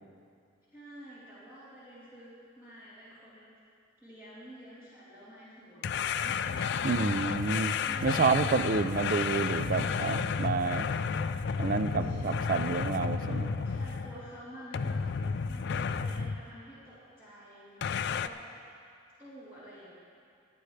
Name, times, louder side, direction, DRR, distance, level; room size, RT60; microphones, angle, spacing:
voice 1, 0.7-3.6 4.0-6.8 7.4-8.4 12.0-18.4 19.2-19.9, equal, 10° right, -13 dB, 3.5 m, -50 dB
sound 1, 5.8-14.3 14.7-16.5 17.8-18.3, left 6 dB, 60° left, 0.4 m, -32 dB
voice 2, 6.8-7.7 8.0-10.9 11.6-13.5, right 4 dB, 45° right, 11 dB, 0.5 m, -29 dB
25.0 x 9.3 x 3.3 m, 2.3 s
head